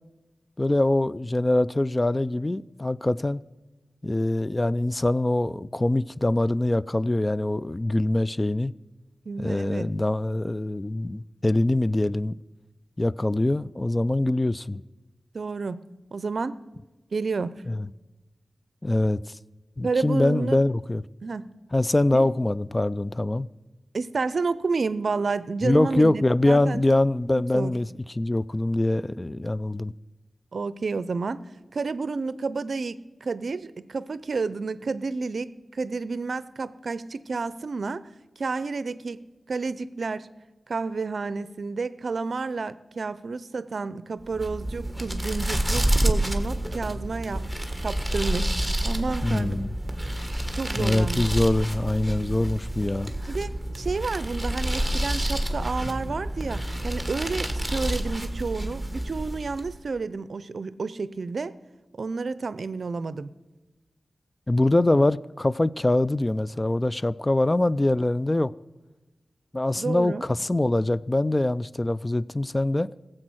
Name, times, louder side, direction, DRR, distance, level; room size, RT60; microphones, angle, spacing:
voice 1, 0.6-3.4 4.0-8.7 9.4-12.4 13.0-14.8 17.7-17.8 18.8-19.2 19.8-21.0 21.7-23.5 25.6-27.9 28.2-29.9 49.2-49.7 50.8-53.1 64.5-68.5 69.5-72.9, left 1 dB, 25° left, 0.3 m, -23 dB
voice 2, 9.3-9.9 15.3-15.8 16.1-16.5 17.1-17.5 19.8-20.6 21.2-21.5 22.1-22.2 23.9-27.0 27.3-27.8 30.5-31.4 31.7-38.1 38.4-40.3 40.7-47.5 47.8-49.6 50.5-51.3 53.3-61.6 62.0-63.3 69.8-70.2, right 4 dB, 70° right, 0.5 m, -30 dB
sound 1, 44.3-59.8, right 1 dB, ahead, 1.6 m, -28 dB
15.5 x 7.7 x 6.2 m
cardioid pair, 55°, 0 cm